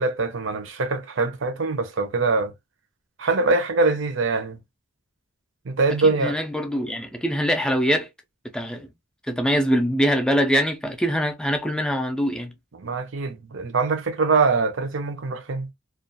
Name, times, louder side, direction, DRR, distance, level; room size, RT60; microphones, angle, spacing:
voice 1, 0.0-2.5 3.2-4.6 5.7-6.4 12.7-15.7, right 3 dB, 80° right, 0.6 m, -23 dB
voice 2, 6.0-8.1 8.5-8.9 9.3-12.5, equal, 5° left, 0.4 m, -23 dB
2.4 x 2.2 x 2.6 m
head